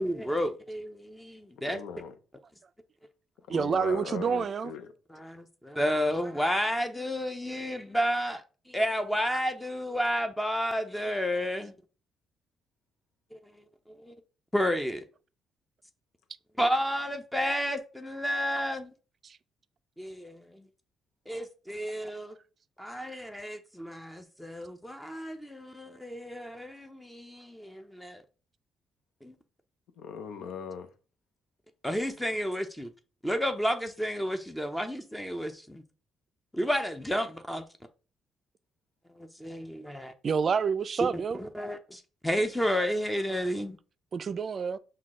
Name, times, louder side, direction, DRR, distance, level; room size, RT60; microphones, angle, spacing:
voice 1, 0.0-1.8 5.1-8.4 8.7-11.7 13.3-13.4 13.9-14.1 14.5-15.0 16.6-18.9 20.0-20.6 21.3-22.4 22.8-28.2 29.2-29.3 31.8-32.9 33.2-35.8 36.5-37.6 39.2-40.1 41.0-41.1 41.4-43.8, equal, 5° left, 0.5 m, -31 dB
voice 2, 1.6-2.1 3.5-4.9 30.0-30.9, left 7 dB, 85° left, 0.6 m, -39 dB
voice 3, 3.5-4.7 19.2-19.4 40.2-41.4 44.1-44.8, right 6 dB, 45° right, 0.3 m, -28 dB
5.7 x 2.3 x 3.6 m
cardioid pair, 90°, 0 cm